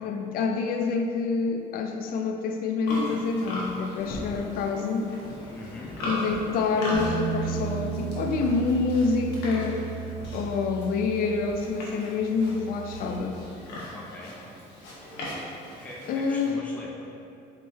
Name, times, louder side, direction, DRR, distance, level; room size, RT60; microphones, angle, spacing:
voice 1, 0.0-5.1 6.0-9.8 10.3-13.4 16.1-16.6, left 4 dB, 60° left, 4 dB, 0.4 m, -27 dB
Livestock farm animals working animals, 2.8-16.5, left 1 dB, 85° left, 0.9 m, -38 dB
voice 2, 5.5-6.0 13.9-14.4 15.7-17.1, left 2 dB, 10° left, -4 dB, 0.5 m, -42 dB
Bass guitar, 6.9-13.2, right 8 dB, 80° right, 0.8 m, -35 dB
4.2 x 3.6 x 2.7 m, 2.6 s
cardioid pair, 110°, 17 cm